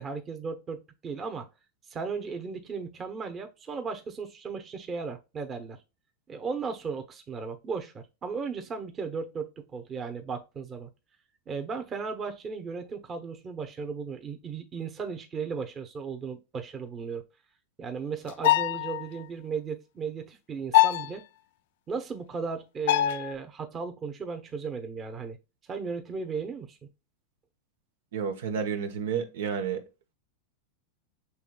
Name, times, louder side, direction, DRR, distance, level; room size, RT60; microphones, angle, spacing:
voice 1, 0.0-1.5 1.9-5.8 6.3-10.9 11.5-17.2 17.8-21.2 21.9-25.4 25.7-26.8, right 5 dB, 25° right, 0.9 m, -36 dB
sound 1, 18.3-19.1 20.7-21.1 22.9-23.3, left 14 dB, 70° left, 0.3 m, -22 dB
voice 2, 28.1-29.8, right 7 dB, 80° right, 1.0 m, -30 dB
7.0 x 3.3 x 2.3 m
hypercardioid pair, 120°, 0 cm